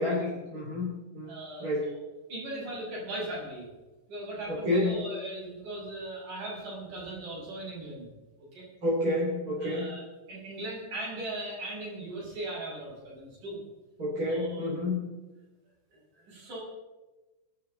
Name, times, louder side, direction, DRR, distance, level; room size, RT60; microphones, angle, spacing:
voice 1, 0.0-1.3 1.6-1.9 4.5-5.0 8.8-10.0 14.0-15.0, left 1 dB, 25° right, -6 dB, 3.4 m, -29 dB
voice 2, 1.3-2.0 2.3-3.7 4.1-8.1 8.5-8.7 9.6-13.6 14.3-14.7 15.9-16.6, right 1 dB, 80° right, -5 dB, 8.1 m, -39 dB
24.0 x 12.0 x 4.0 m, 1.1 s
omnidirectional pair, 3.8 m